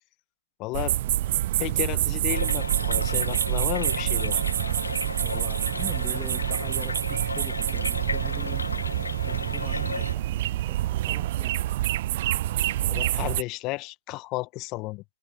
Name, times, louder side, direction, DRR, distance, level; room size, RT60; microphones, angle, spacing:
voice 1, 0.6-1.0 1.6-4.4 12.6-15.0, left 21 dB, 30° left, 1.5 m, -33 dB
sound 1, 0.7-13.4, right 14 dB, 45° right, 0.6 m, -27 dB
sound 2, 2.3-10.1, left 3 dB, 90° left, 1.9 m, -34 dB
sound 3, 2.6-8.3, right 6 dB, 70° right, 3.3 m, -53 dB
voice 2, 5.2-8.7 9.3-11.6, left 3 dB, 5° left, 2.4 m, -43 dB
figure-of-eight pair, 130°, 0 cm